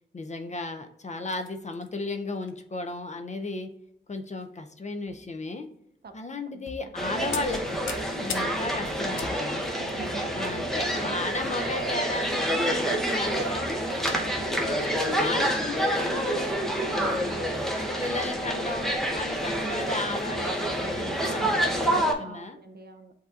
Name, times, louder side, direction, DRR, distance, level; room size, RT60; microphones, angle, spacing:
voice 1, 0.1-3.7 4.1-5.7 6.1-7.8 8.2-9.7 10.3-13.9 14.4-14.8 15.1-16.6 16.8-17.4 17.7-22.6, left 2 dB, 35° left, 6 dB, 0.5 m, -35 dB
sound 1, 1.2-1.9 2.4-2.5 2.9-3.1 4.1-4.5 5.0-5.3 6.1-6.2 6.7-6.9 7.3-11.0 11.3-11.5 12.0-12.1, left 5 dB, 80° left, 0.5 m, -39 dB
voice 2, 6.5-6.9 9.8-10.4 11.0-11.5 14.1-14.5 19.6-19.8 21.2-21.5 22.2-23.1, right 3 dB, 55° right, 7 dB, 0.5 m, -45 dB
sound 2, 7.0-22.1, right 1 dB, ahead, 0.8 m, -28 dB
7.9 x 2.7 x 2.4 m, 0.77 s
wide cardioid pair, 75°, 20 cm